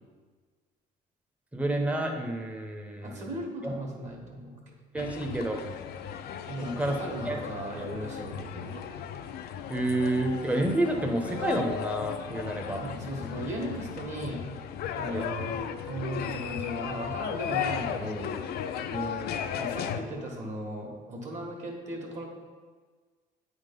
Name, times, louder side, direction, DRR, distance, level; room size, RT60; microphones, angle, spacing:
voice 1, 1.5-3.3 3.6-3.7 4.9-5.6 6.8-7.0 7.3-7.4 7.8-7.9 9.7-12.8 15.1-15.2 18.9-19.5, right 1 dB, 10° right, 2 dB, 0.9 m, -29 dB
voice 2, 3.0-4.6 6.5-8.8 12.7-14.5 14.9-18.4 19.6-22.2, right 1 dB, 45° right, 0 dB, 1.7 m, -37 dB
sound 1, 5.0-20.0, left 8 dB, 65° left, 0.5 m, -36 dB
8.6 x 3.7 x 5.4 m, 1.5 s
cardioid pair, 110°, 17 cm